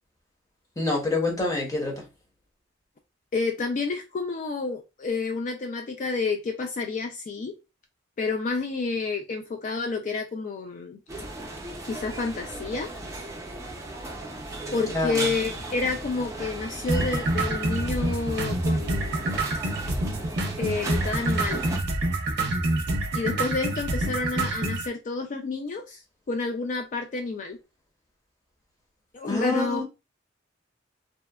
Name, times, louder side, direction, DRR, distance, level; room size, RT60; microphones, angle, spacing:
voice 1, 0.8-2.1 14.9-15.3 29.3-29.8, left 2 dB, 15° left, 0.9 m, -26 dB
voice 2, 3.3-7.5 8.2-11.0 11.8-12.9 14.7-19.3 20.6-21.6 23.1-26.0 26.3-27.6 29.1-29.8, left 4 dB, 40° left, 0.3 m, -29 dB
sound 1, 11.1-21.8, right 2 dB, 15° right, 0.5 m, -36 dB
sound 2, 16.9-24.9, right 2 dB, 60° right, 0.6 m, -27 dB
2.7 x 2.2 x 2.2 m
head